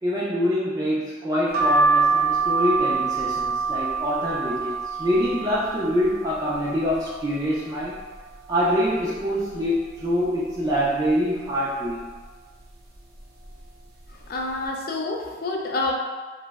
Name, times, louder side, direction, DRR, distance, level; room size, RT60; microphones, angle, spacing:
voice 1, 0.0-8.0 8.5-12.0, equal, 20° right, -8 dB, 0.3 m, -25 dB
sound 1, 1.5-7.2 7.7-8.4 8.8-8.9 9.1-10.2 10.7-11.1 11.8-12.2 13.0-13.2 13.5-13.7, right 4 dB, 55° right, 0.7 m, -26 dB
voice 2, 14.1-15.9, left 2 dB, 50° left, 1 dB, 0.4 m, -28 dB
2.9 x 2.0 x 3.4 m, 1.4 s
head